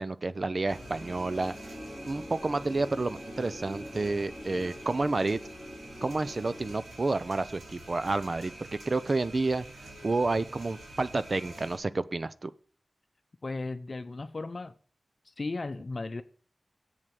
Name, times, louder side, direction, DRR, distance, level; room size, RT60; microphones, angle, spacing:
voice 1, 0.0-1.5 2.1-5.4 6.0-8.5 8.9-9.6 10.0-12.5, right 3 dB, 50° right, 0.6 m, -30 dB
sound 1, 0.7-6.7, left 1 dB, 5° right, 3.1 m, -45 dB
sound 2, 0.7-11.8, right 1 dB, 90° right, 3.3 m, -47 dB
voice 2, 13.4-14.7 15.3-16.2, left 3 dB, 55° left, 0.7 m, -35 dB
8.0 x 7.5 x 7.6 m
wide cardioid pair, 60°, 0 cm